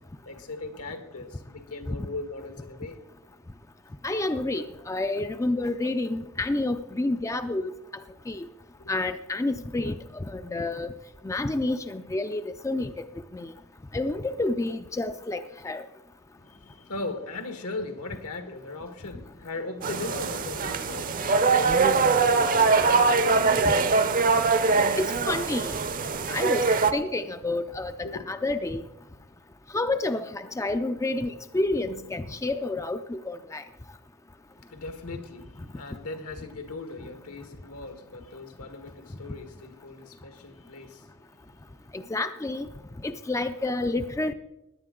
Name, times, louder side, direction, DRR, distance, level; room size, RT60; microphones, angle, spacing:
voice 1, 0.2-3.0 8.8-8.9 16.4-25.0 28.0-28.2 34.5-41.8, left 3 dB, 80° left, 1.6 m, -39 dB
voice 2, 4.0-7.7 8.3-8.5 8.9-10.9 11.2-12.9 13.3-13.5 13.9-15.9 23.7-23.8 25.0-25.7 26.3-28.8 29.7-33.6 41.9-42.7 43.0-44.3, left 2 dB, 15° left, 0.4 m, -29 dB
sound 1, 19.8-26.9, right 4 dB, 40° right, 0.6 m, -22 dB
17.0 x 10.5 x 3.8 m
head